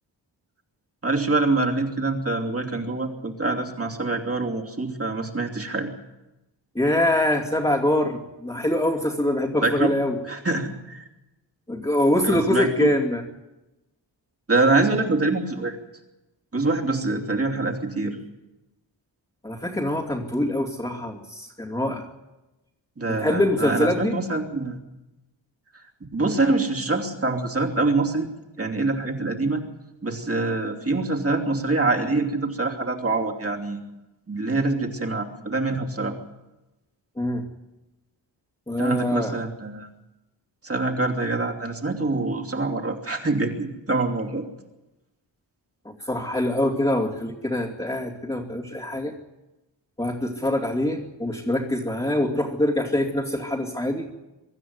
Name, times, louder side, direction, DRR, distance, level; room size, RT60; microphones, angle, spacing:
voice 1, 1.0-5.9 9.6-9.9 10.2-11.0 12.2-12.9 14.5-15.8 16.5-18.2 23.0-24.8 26.1-28.3 28.6-29.6 30.0-33.8 34.3-36.1 38.8-39.9 40.6-44.4, right 3 dB, 30° right, 1 dB, 2.9 m, -25 dB
voice 2, 6.7-10.2 11.7-13.2 19.4-22.1 23.1-24.2 37.2-37.4 38.7-39.4 45.8-49.1 50.0-54.1, left 1 dB, 15° left, -6 dB, 2.5 m, -24 dB
24.0 x 13.0 x 9.6 m, 1.0 s
wide cardioid pair, 125°, 44 cm